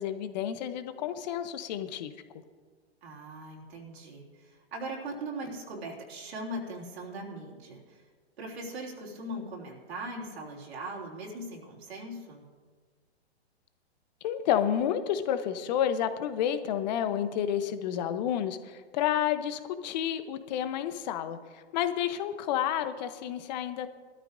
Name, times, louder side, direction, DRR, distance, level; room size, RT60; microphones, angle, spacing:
voice 1, 0.0-2.1 14.2-24.0, left 10 dB, 40° left, 10 dB, 1.0 m, -30 dB
voice 2, 3.0-8.0 8.4-12.4, right 1 dB, 70° right, -1 dB, 3.2 m, -40 dB
20.5 x 13.5 x 2.7 m, 1.5 s
hypercardioid pair, 125°, 33 cm